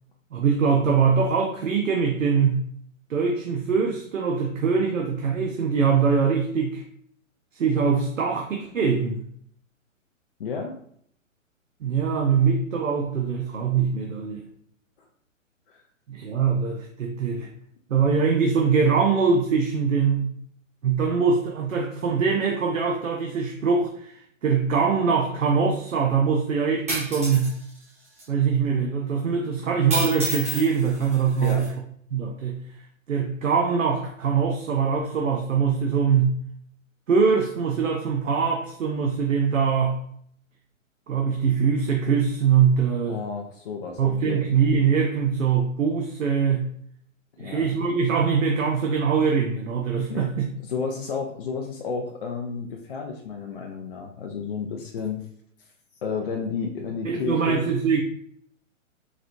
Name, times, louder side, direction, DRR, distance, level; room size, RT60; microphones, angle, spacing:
voice 1, 0.3-2.6 3.1-6.8 7.5-9.2 11.8-14.4 16.1-17.5 17.9-20.4 20.8-27.5 28.3-31.7 32.1-32.6 33.1-36.4 37.1-40.0 41.1-43.2 44.0-46.7 47.4-50.5 57.0-58.0, right 6 dB, 70° right, 2 dB, 0.7 m, -23 dB
voice 2, 10.4-10.8 15.7-15.8 31.4-31.7 43.1-44.4 47.4-47.7 50.1-50.3 50.7-55.2 56.0-57.6, left 5 dB, 45° left, 2 dB, 0.5 m, -31 dB
sound 1, 26.9-27.5 28.2-28.3 29.9-31.7, equal, 10° right, 0.4 m, -30 dB
4.0 x 3.1 x 2.6 m, 0.66 s
figure-of-eight pair, 125°, 40 cm